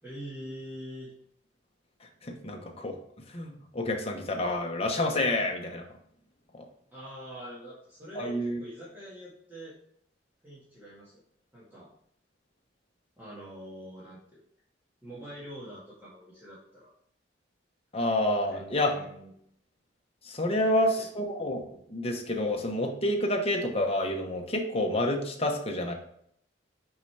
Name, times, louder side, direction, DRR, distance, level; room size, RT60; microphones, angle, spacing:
voice 1, 0.0-1.1 6.9-9.8 10.4-11.2 11.5-11.9 13.2-14.2 15.0-16.9 18.5-19.3 20.5-21.1, equal, 10° right, -9 dB, 1.7 m, -44 dB
voice 2, 2.2-3.0 3.3-5.8 6.5-6.6 8.1-8.6 17.9-18.9 20.2-21.6 21.9-25.9, left 1 dB, 35° left, 2 dB, 1.0 m, -28 dB
6.0 x 5.3 x 3.3 m, 0.67 s
head